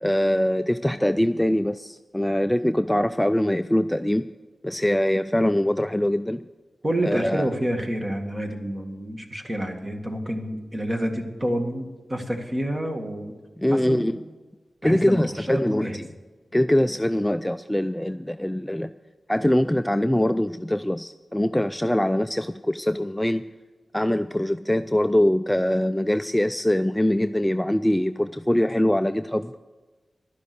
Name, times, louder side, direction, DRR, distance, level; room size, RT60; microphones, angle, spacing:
voice 1, 0.0-4.3 4.6-6.4 7.0-7.5 13.6-14.2 14.8-16.1 16.5-18.9 19.3-23.4 23.9-29.5, left 1 dB, 5° left, 10 dB, 0.3 m, -23 dB
voice 2, 6.8-13.3 13.7-14.1 14.8-16.0, right 1 dB, 30° right, 3 dB, 1.9 m, -28 dB
12.0 x 10.5 x 6.8 m, 1.3 s
wide cardioid pair, 100°, 0 cm